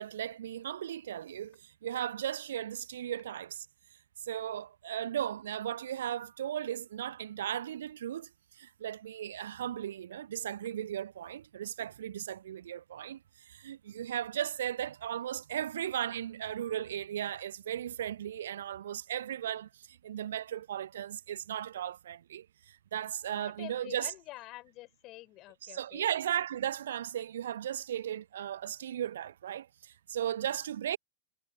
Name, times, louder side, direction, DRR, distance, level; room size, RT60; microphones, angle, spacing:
voice 1, 0.0-3.7 4.2-24.1 25.7-31.0, right 10 dB, 60° right, 0.7 m, -36 dB
voice 2, 23.3-26.1 30.4-30.6, left 18 dB, 40° left, 5.4 m, -48 dB
figure-of-eight pair, 90°, 0 cm